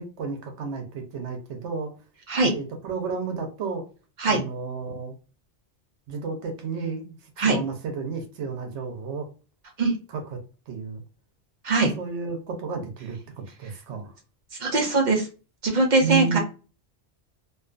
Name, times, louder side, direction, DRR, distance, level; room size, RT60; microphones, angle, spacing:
voice 1, 0.0-1.9 2.5-3.8 4.3-5.1 6.1-7.2 7.4-9.3 10.1-10.4 10.7-11.0 12.0-14.1 16.0-16.4, right 5 dB, 90° right, 4 dB, 0.9 m, -32 dB
voice 2, 14.5-15.3 15.6-16.4, right 3 dB, 50° right, 1 dB, 0.7 m, -21 dB
2.4 x 2.3 x 2.3 m, 0.34 s
omnidirectional pair, 1.1 m